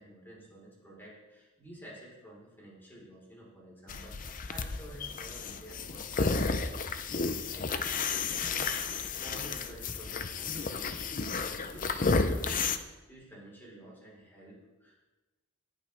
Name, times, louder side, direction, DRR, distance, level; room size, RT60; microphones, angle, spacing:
voice 1, 0.0-6.6 7.5-15.0, right 1 dB, 10° left, -4 dB, 4.1 m, -51 dB
sound 1, 3.9-12.8, left 4 dB, 40° left, 0.6 m, -32 dB
19.0 x 8.5 x 3.4 m, 1.1 s
head